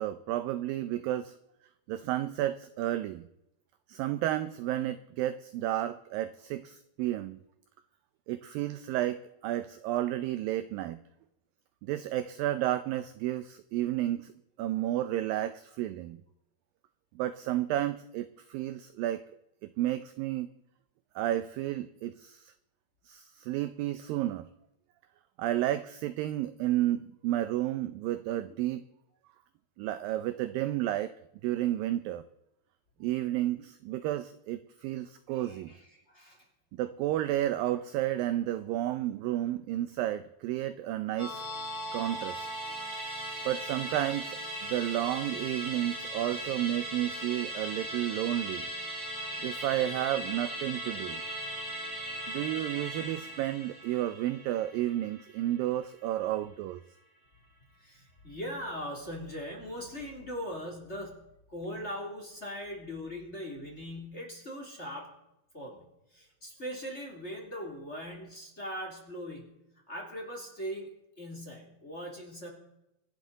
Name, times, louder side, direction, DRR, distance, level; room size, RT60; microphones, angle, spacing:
voice 1, 0.0-1.3 1.9-3.3 3.9-7.4 8.3-11.0 11.9-14.3 14.6-16.2 17.2-19.2 19.8-20.5 21.2-22.5 23.1-24.5 25.4-28.8 29.8-31.1 31.4-32.3 33.0-35.7 36.8-41.4 41.9-42.5 43.5-48.7 49.4-51.2 52.3-56.8, right 13 dB, 80° right, 13 dB, 2.0 m, -31 dB
voice 2, 35.3-36.4 57.8-61.2 61.5-65.1 65.5-69.5 69.9-70.9 71.2-72.5, equal, 20° left, 1 dB, 2.6 m, -40 dB
Musical instrument, 41.2-55.9 56.2-56.3, right 1 dB, 15° right, 3.3 m, -38 dB
25.0 x 11.5 x 4.0 m, 0.87 s
omnidirectional pair, 4.7 m